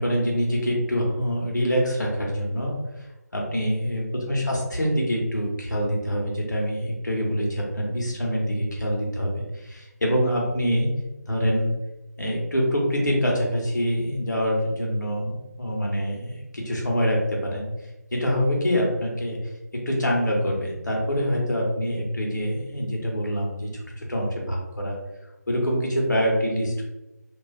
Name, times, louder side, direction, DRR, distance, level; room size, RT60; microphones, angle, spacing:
voice 1, 0.0-10.9 11.3-11.7 12.2-17.7 18.1-19.4 19.7-23.7 24.0-25.0 25.5-26.8, equal, 90° left, -1 dB, 0.9 m, -25 dB
2.4 x 2.2 x 2.4 m, 0.97 s
figure-of-eight pair, 160°, 9 cm